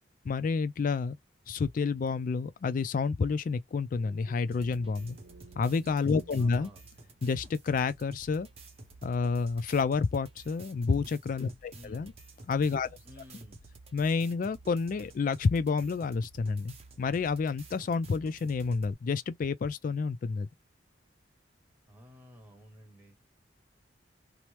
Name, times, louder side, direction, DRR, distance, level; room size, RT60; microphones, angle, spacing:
voice 1, 0.2-1.2 1.5-5.2 5.6-6.7 7.2-8.5 9.0-12.1 12.5-12.9 13.9-20.5, left 4 dB, 45° left, 0.3 m, -29 dB
sound 1, 3.9-7.6, right 3 dB, 70° right, 0.8 m, -55 dB
sound 2, 4.5-18.9, right 2 dB, 35° right, 0.6 m, -52 dB
voice 2, 6.4-6.9 11.7-12.2 13.0-13.6 21.9-23.1, left 1 dB, 10° right, 1.1 m, -52 dB
2.9 x 2.0 x 3.1 m
head